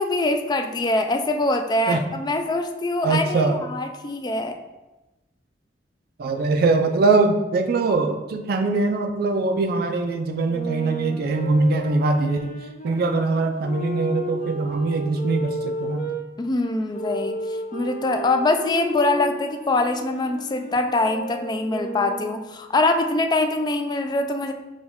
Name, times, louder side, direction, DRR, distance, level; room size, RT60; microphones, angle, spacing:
voice 1, 0.0-4.6 16.4-17.4 17.7-24.5, left 2 dB, 25° left, 5 dB, 0.3 m, -23 dB
voice 2, 3.0-3.6 6.2-12.6 12.8-16.1, right 3 dB, 55° right, 6 dB, 0.4 m, -22 dB
sound 1, 10.4-16.2 16.9-22.4, equal, 45° left, 0.8 m, -33 dB
6.2 x 2.3 x 3.6 m, 1.1 s
head